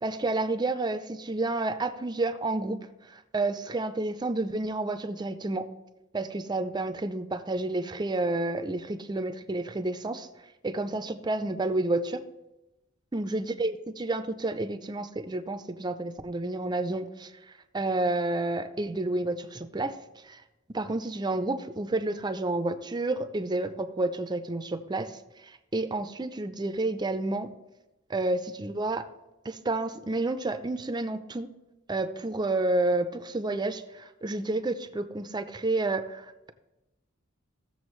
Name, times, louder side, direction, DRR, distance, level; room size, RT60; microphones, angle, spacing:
voice 1, 0.0-2.8 3.1-5.7 6.1-10.3 10.6-12.2 13.1-17.3 17.7-19.9 20.2-20.4 20.7-25.1 25.4-27.5 28.1-29.1 29.4-31.5 31.9-36.5, right 2 dB, 20° right, 10 dB, 0.5 m, -30 dB
16.0 x 6.9 x 3.2 m, 1.0 s
head